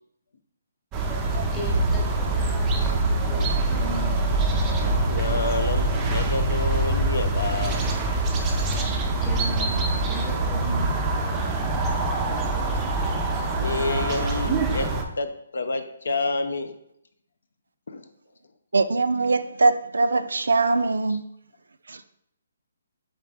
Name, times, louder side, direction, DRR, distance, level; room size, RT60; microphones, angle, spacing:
sound 1, 0.9-15.0, right 2 dB, 15° right, 0.4 m, -24 dB
voice 1, 1.5-3.0 3.3-4.1 8.8-11.8, left 1 dB, 15° left, 0.7 m, -38 dB
voice 2, 4.8-7.9 12.5-12.6 13.5-14.9 15.2-16.7 17.9-18.1 21.1-21.2, left 3 dB, 75° left, 0.5 m, -29 dB
voice 3, 18.7-21.2 21.9-22.0, right 3 dB, 90° right, 0.3 m, -22 dB
3.8 x 3.6 x 3.4 m
hypercardioid pair, 165°, 0 cm